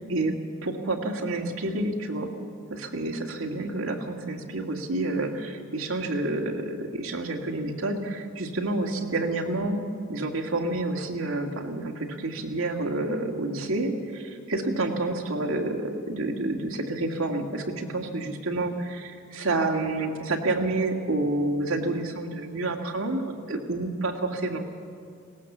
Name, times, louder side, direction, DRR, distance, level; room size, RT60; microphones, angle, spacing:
voice 1, 0.6-2.3 2.8-9.8 10.1-24.6, right 2 dB, 75° right, 2 dB, 2.0 m, -29 dB
20.0 x 18.0 x 7.3 m, 2.3 s
head